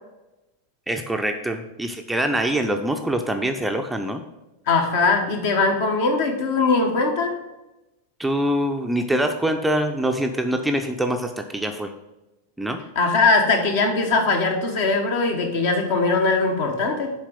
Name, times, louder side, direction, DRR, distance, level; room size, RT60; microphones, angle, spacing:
voice 1, 0.9-4.2 8.2-11.9 12.6-12.8, right 1 dB, 5° right, 5 dB, 0.5 m, -24 dB
voice 2, 4.7-7.4 12.9-17.1, left 3 dB, 55° left, 4 dB, 1.3 m, -20 dB
7.2 x 4.6 x 5.3 m, 1.0 s
figure-of-eight pair, 90°, 0 cm